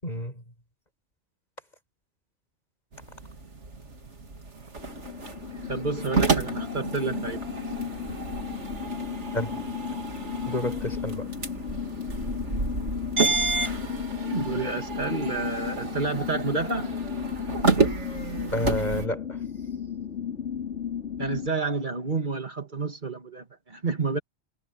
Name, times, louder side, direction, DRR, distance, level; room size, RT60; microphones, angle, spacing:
voice 1, 0.0-0.4 9.3-9.6 10.5-11.3 18.5-19.4, left 1 dB, 40° left, 7.3 m, -30 dB
sound 1, 2.9-19.1, right 4 dB, 90° right, 3.0 m, -30 dB
sound 2, 4.8-21.5, left 8 dB, 75° left, 3.0 m, -35 dB
voice 2, 5.7-7.4 14.2-16.9 21.2-24.2, right 3 dB, 45° right, 2.3 m, -29 dB
omnidirectional pair, 1.2 m